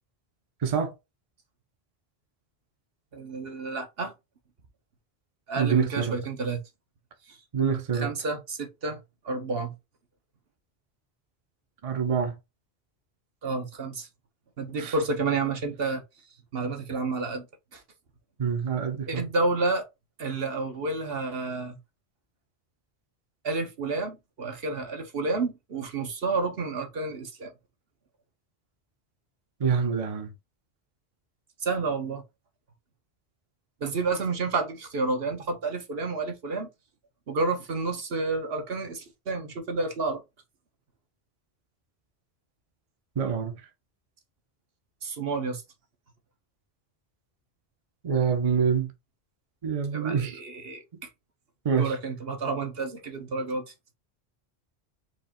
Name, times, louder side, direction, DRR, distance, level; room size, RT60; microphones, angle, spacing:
voice 1, 0.6-0.9 5.6-6.2 7.5-8.1 11.8-12.4 14.8-14.9 18.4-19.3 29.6-30.3 43.2-43.7 48.0-48.9 49.6-50.4 51.6-52.0, right 6 dB, 40° right, 0.7 m, -26 dB
voice 2, 3.1-4.1 5.5-6.6 7.3-7.4 7.9-9.0 9.2-9.7 13.4-14.1 14.6-16.0 16.5-17.5 17.7-17.8 19.1-19.9 20.2-21.8 23.4-27.5 31.6-32.2 33.8-36.7 37.3-40.2 45.0-45.6 49.9-50.8 51.8-53.7, right 3 dB, 65° right, 1.2 m, -30 dB
4.7 x 2.5 x 4.3 m
omnidirectional pair, 1.1 m